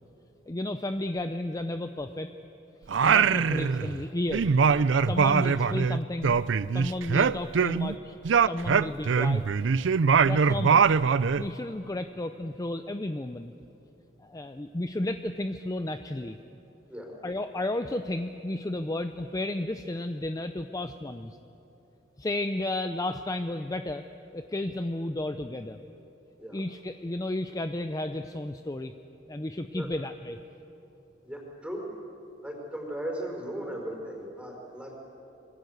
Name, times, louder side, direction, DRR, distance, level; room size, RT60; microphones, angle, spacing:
voice 1, 0.5-2.3 3.0-4.5 5.0-6.4 6.7-8.2 8.4-9.5 10.2-10.9 11.4-13.5 14.2-16.4 17.2-21.4 22.2-24.0 24.3-25.8 26.5-28.9 29.3-30.4, left 1 dB, 20° left, 9 dB, 0.6 m, -33 dB
Singing, 2.9-4.0 4.3-7.9 8.2-11.5, right 6 dB, 85° right, 0.5 m, -23 dB
voice 2, 31.2-31.8 32.4-35.0, right 1 dB, 5° right, -1 dB, 5.0 m, -37 dB
27.0 x 22.0 x 8.1 m, 2.9 s
head